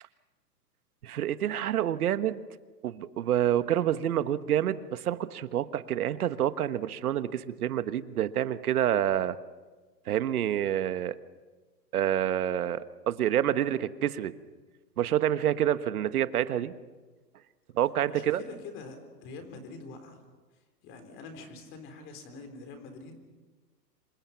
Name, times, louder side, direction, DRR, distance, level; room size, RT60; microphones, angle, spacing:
voice 1, 1.0-2.4 2.8-9.4 10.1-11.2 11.9-14.3 15.0-16.7 17.7-18.4, right 11 dB, 60° right, 13 dB, 1.3 m, -28 dB
voice 2, 18.1-20.2 20.8-23.2, left 3 dB, 25° left, 7 dB, 3.8 m, -45 dB
27.5 x 24.0 x 5.8 m, 1.3 s
hypercardioid pair, 150°, 50 cm